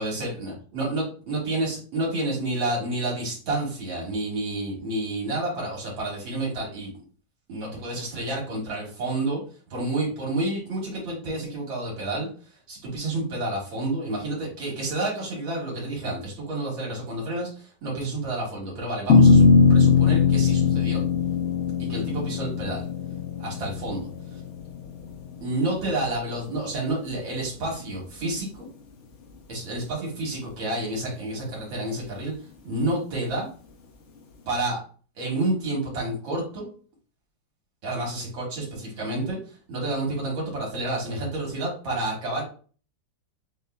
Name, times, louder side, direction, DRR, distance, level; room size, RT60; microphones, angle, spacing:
voice 1, 0.0-7.0 7.5-9.4 9.7-21.0 21.8-22.9 23.4-24.4 25.4-28.7 29.5-33.5 34.5-34.8 35.2-36.7 37.8-42.4, right 2 dB, 85° right, -3 dB, 2.5 m, -29 dB
sound 1, 19.1-25.6, left 5 dB, 65° left, 0.7 m, -20 dB
7.0 x 2.4 x 2.2 m, 0.40 s
omnidirectional pair, 2.1 m